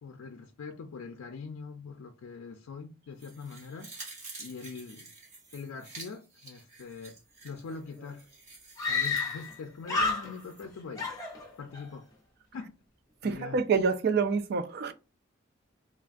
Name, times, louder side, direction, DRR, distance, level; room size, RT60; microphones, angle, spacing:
voice 1, 0.0-3.9 4.4-5.1 5.5-7.2 7.4-8.3 8.9-11.1 11.6-12.1 12.5-12.7 13.2-13.6, left 5 dB, 85° left, 0.4 m, -43 dB
sound 1, 3.2-10.6 11.0-11.1, right 3 dB, 35° right, 1.1 m, -49 dB
Screaming, 7.7-7.8 8.0-8.1 8.8-9.6 9.8-10.6 11.0-11.9, left 4 dB, 15° left, 0.7 m, -31 dB
voice 2, 13.2-14.9, right 5 dB, 50° right, 0.3 m, -27 dB
3.2 x 2.3 x 2.5 m
head